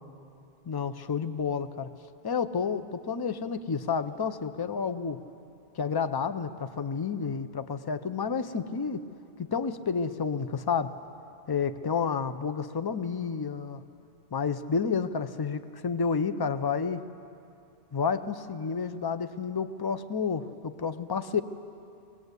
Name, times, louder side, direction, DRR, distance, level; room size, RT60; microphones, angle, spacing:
voice 1, 0.7-1.9 2.2-5.2 5.8-9.0 9.4-10.9 11.5-13.8 14.3-17.0 17.9-21.4, left 6 dB, 30° left, 11 dB, 0.5 m, -30 dB
23.0 x 19.0 x 8.2 m, 2.6 s
omnidirectional pair, 1.1 m